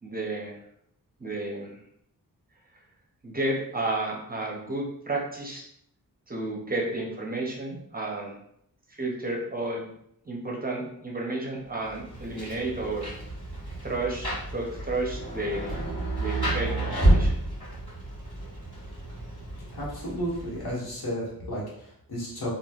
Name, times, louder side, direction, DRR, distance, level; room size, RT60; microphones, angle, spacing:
voice 1, 0.0-0.6 1.2-1.8 3.2-5.6 6.3-8.4 8.9-9.9 10.3-13.1 13.8-15.8 16.2-17.3, right 2 dB, 25° right, -1 dB, 0.5 m, -32 dB
Rain, 11.8-20.9, right 1 dB, 15° left, 1.5 m, -30 dB
voice 2, 19.7-22.5, equal, 85° left, -6 dB, 1.2 m, -33 dB
3.1 x 2.3 x 2.3 m, 0.72 s
wide cardioid pair, 95°, 37 cm